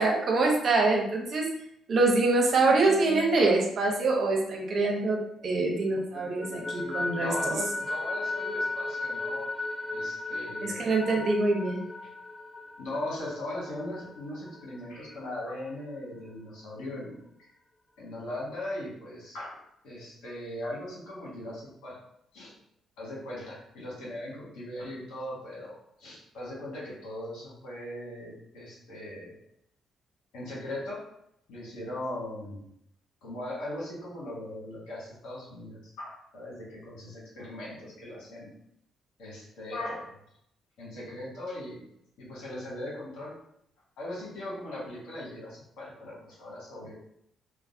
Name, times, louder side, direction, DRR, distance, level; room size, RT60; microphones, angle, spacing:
voice 1, 0.0-1.4 1.9-7.5 10.6-11.8, right 3 dB, 55° right, 0 dB, 0.7 m, -25 dB
sound 1, 2.7-5.5 5.9-15.3, left 2 dB, 20° left, 0.4 m, -36 dB
voice 2, 6.8-9.5 9.9-10.9 12.8-17.5 18.0-19.6 19.8-22.0 22.3-22.5 23.0-29.4 30.3-31.0 31.5-32.7 33.2-38.5 39.2-40.1 40.8-41.8 42.2-43.3 44.0-46.9, left 1 dB, 80° left, -6 dB, 1.3 m, -39 dB
3.2 x 2.3 x 2.5 m, 0.74 s
supercardioid pair, 70°, 0 cm